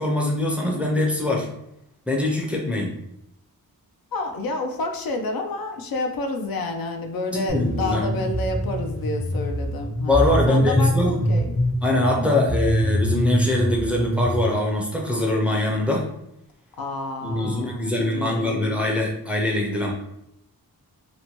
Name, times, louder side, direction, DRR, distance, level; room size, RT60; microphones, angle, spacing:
voice 1, 0.0-1.5 2.1-2.9 7.3-8.1 10.1-11.2 11.8-16.1 17.2-19.9, left 1 dB, 5° right, -2 dB, 0.4 m, -23 dB
voice 2, 4.1-11.5 12.1-12.4 16.8-18.6, left 2 dB, 75° left, 4 dB, 0.5 m, -29 dB
sound 1, 7.5-14.3, equal, 35° left, 0.7 m, -24 dB
2.9 x 2.1 x 2.9 m, 0.81 s
wide cardioid pair, 120°, 36 cm